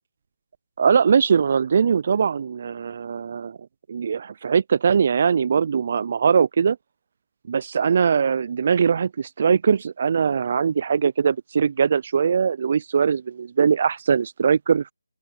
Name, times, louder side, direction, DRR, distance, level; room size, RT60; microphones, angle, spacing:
voice 1, 0.8-3.6 3.9-6.8 7.5-14.9, right 6 dB, 40° right, 0.5 m, -21 dB
open air
figure-of-eight pair, 155°, 0 cm